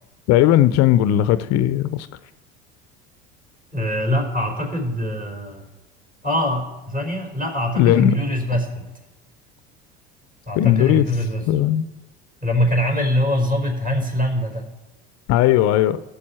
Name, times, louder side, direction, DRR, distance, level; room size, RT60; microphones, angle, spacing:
voice 1, 0.3-2.1 7.8-8.2 10.6-11.1 11.5-11.9 15.3-16.0, left 12 dB, 60° left, 14 dB, 0.6 m, -17 dB
voice 2, 3.7-5.6 6.2-8.8 10.5-11.4 12.4-14.7, equal, 25° right, 0 dB, 4.4 m, -23 dB
16.5 x 7.0 x 4.4 m, 1.1 s
hypercardioid pair, 80°, 31 cm